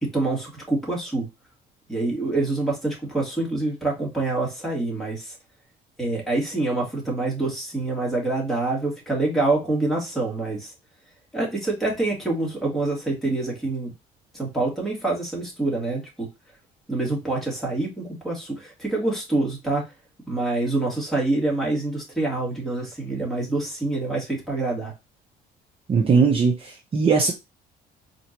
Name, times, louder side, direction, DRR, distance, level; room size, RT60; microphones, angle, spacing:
voice 1, 0.0-1.3 1.9-5.3 6.0-10.7 11.3-13.9 14.3-16.3 16.9-19.9 20.3-24.9, right 2 dB, ahead, -3 dB, 2.1 m, -26 dB
voice 2, 25.9-27.3, right 5 dB, 35° right, 1 dB, 0.7 m, -19 dB
4.2 x 2.7 x 2.9 m, 0.24 s
cardioid pair, 110°, 17 cm